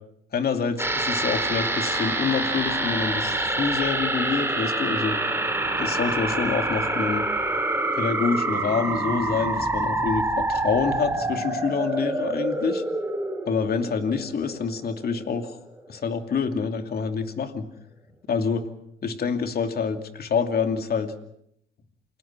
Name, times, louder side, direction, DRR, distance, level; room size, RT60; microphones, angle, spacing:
voice 1, 0.3-5.2 5.8-7.2 7.9-12.8 13.5-15.6 15.9-17.7 18.3-18.7 19.0-21.1, left 5 dB, 50° left, 6 dB, 2.7 m, -27 dB
sound 1, 0.8-15.4 15.7-15.8, right 2 dB, 10° right, 3.6 m, -27 dB
28.5 x 20.0 x 6.1 m, 0.73 s
cardioid pair, 90°, 20 cm